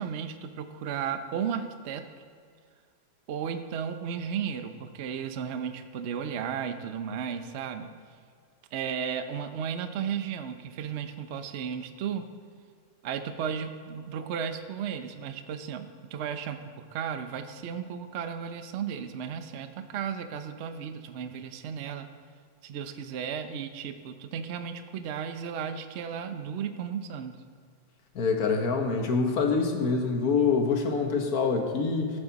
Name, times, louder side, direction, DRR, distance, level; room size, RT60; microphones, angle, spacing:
voice 1, 0.0-2.0 3.3-7.9 8.7-12.3 13.0-22.1 22.6-27.4, right 7 dB, 90° right, 8 dB, 0.6 m, -34 dB
voice 2, 28.1-32.1, left 4 dB, 55° left, 4 dB, 1.6 m, -25 dB
18.0 x 7.3 x 4.1 m, 2.1 s
omnidirectional pair, 2.1 m